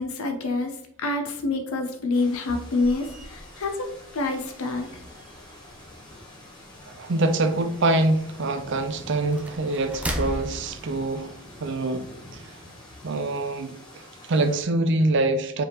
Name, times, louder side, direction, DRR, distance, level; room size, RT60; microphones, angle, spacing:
voice 1, 0.0-3.9 4.1-4.9, left 3 dB, 80° left, 0.7 m, -27 dB
sound 1, 2.1-14.6, left 1 dB, 20° left, 1.4 m, -46 dB
sound 2, 2.8-11.7, equal, 5° right, 0.5 m, -39 dB
voice 2, 6.9-12.1 12.3-12.4 13.0-15.6, right 2 dB, 60° right, 0.5 m, -25 dB
5.1 x 3.4 x 2.9 m
head